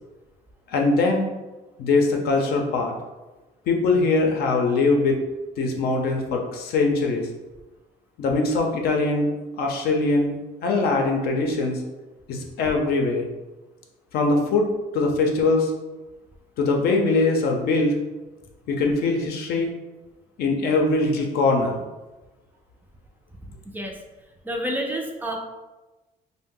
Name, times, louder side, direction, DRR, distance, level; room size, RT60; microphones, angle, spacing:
voice 1, 0.7-1.3 1.8-2.9 3.7-5.2 5.6-7.3 8.2-9.3 9.6-10.3 10.6-11.8 12.3-13.3 14.1-14.7 14.9-15.7 16.6-17.9 18.7-19.7 20.4-21.8, left 3 dB, 70° left, 2 dB, 0.6 m, -22 dB
voice 2, 23.5-24.0 24.4-25.4, equal, 10° right, 1 dB, 0.4 m, -29 dB
2.6 x 2.0 x 3.7 m, 1.1 s
cardioid pair, 110°, 17 cm